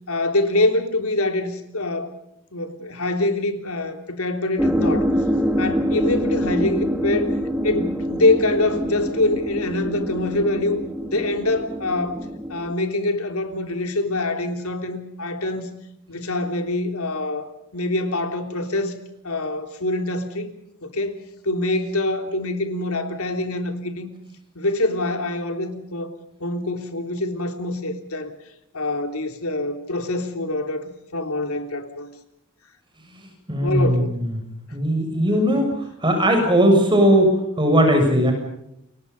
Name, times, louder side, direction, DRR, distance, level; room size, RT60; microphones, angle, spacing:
voice 1, 0.1-2.1 2.5-5.1 5.6-7.3 7.6-10.8 11.1-12.2 12.5-15.7 16.1-17.5 17.7-19.0 19.2-20.5 20.8-21.2 21.4-24.1 24.6-26.1 26.4-28.3 28.7-32.1 33.6-34.1, left 2 dB, 80° left, 6 dB, 3.5 m, -24 dB
sound 1, 4.6-12.7, equal, 5° right, 1.7 m, -25 dB
voice 2, 33.5-34.2 34.7-35.7 36.0-38.3, equal, 20° right, 4 dB, 6.8 m, -18 dB
29.5 x 23.0 x 5.5 m, 0.78 s
head